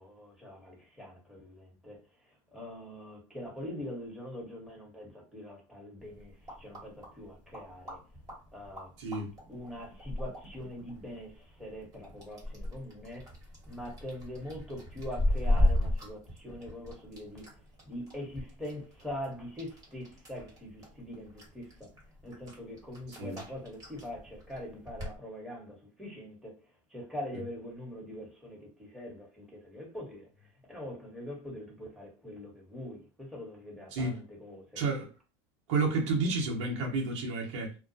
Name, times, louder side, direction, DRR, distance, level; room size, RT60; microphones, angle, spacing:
voice 1, 0.0-2.0 2.5-8.0 8.5-8.9 9.5-13.3 13.7-17.4 17.8-21.9 22.2-26.5 26.9-30.3 30.7-34.8, left 1 dB, ahead, 1.1 m, -43 dB
sound 1, 6.0-25.2, left 1 dB, 25° right, 1.2 m, -36 dB
voice 2, 9.0-9.3 23.2-23.4 33.9-34.2 34.7-35.1 35.7-37.7, right 3 dB, 75° right, 1.0 m, -30 dB
2.3 x 2.1 x 2.6 m
supercardioid pair, 110°, 15 cm